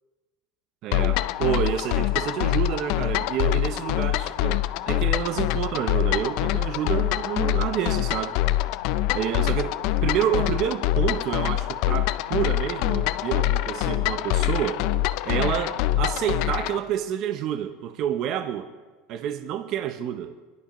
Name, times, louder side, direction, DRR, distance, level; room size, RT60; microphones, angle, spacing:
voice 1, 0.8-8.4 9.1-14.9 15.2-18.7 19.1-20.3, right 10 dB, 45° right, 8 dB, 0.6 m, -28 dB
sound 1, 0.9-16.8, left 14 dB, 60° left, 0.4 m, -25 dB
22.0 x 11.0 x 3.0 m, 1.3 s
cardioid pair, 155°, 0 cm